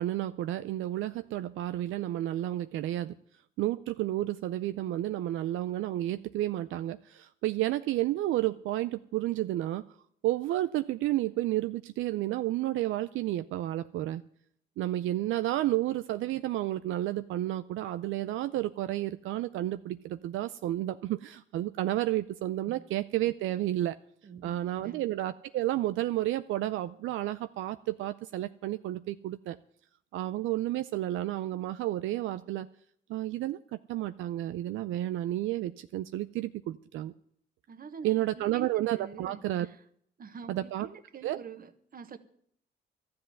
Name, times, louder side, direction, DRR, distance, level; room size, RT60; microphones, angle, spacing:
voice 1, 0.0-3.1 3.6-9.8 10.2-14.2 14.8-24.0 24.4-29.6 30.1-32.7 33.1-33.6 33.9-37.1 38.0-39.7 40.5-40.9 41.2-41.4, right 14 dB, 80° right, 0.5 m, -31 dB
voice 2, 24.2-25.0 37.7-38.7 39.0-39.8 40.2-42.2, right 6 dB, 45° right, 1.3 m, -46 dB
12.5 x 7.8 x 9.5 m
cardioid pair, 90°, 20 cm